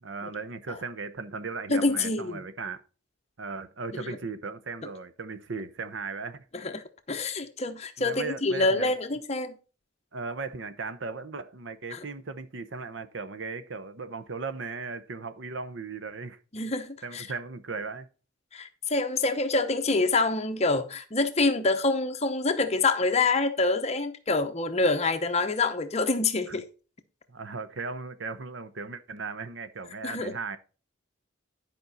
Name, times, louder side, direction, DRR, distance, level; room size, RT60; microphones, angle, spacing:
voice 1, 0.0-2.8 3.4-6.4 8.0-8.9 10.1-16.4 17.0-18.1 26.5-26.6 27.3-30.6, right 4 dB, 65° right, 0.8 m, -37 dB
voice 2, 1.7-2.4 3.9-4.1 6.6-9.6 11.9-12.0 16.5-17.3 18.5-26.7 30.0-30.3, left 3 dB, 30° left, 0.8 m, -26 dB
10.5 x 5.3 x 4.1 m
head